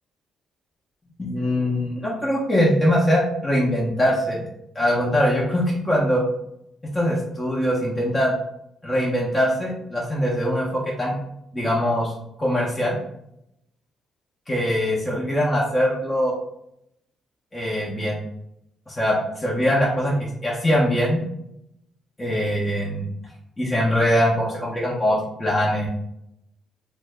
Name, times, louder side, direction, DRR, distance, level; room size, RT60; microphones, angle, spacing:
voice 1, 1.2-4.4 4.7-6.2 6.8-8.4 8.8-11.2 11.5-13.0 14.5-16.3 17.5-18.2 18.9-21.2 22.2-23.1 23.6-25.9, equal, 20° left, -5 dB, 0.7 m, -22 dB
2.6 x 2.1 x 3.3 m, 0.79 s
cardioid pair, 90°, 0 cm